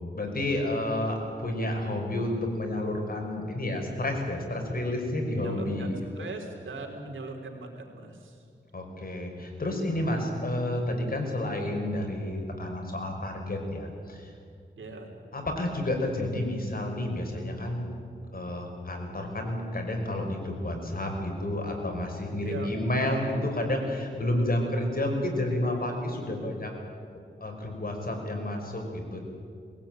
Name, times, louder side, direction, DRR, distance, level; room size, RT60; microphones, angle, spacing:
voice 1, 0.0-6.3 8.7-14.3 15.3-17.9 18.3-26.7 27.4-29.2, left 1 dB, 50° left, 2 dB, 5.4 m, -30 dB
voice 2, 5.3-8.5 14.8-15.1 22.4-22.7, right 3 dB, 90° right, 0 dB, 3.7 m, -40 dB
20.5 x 17.5 x 9.1 m, 2.3 s
cardioid pair, 70°, 20 cm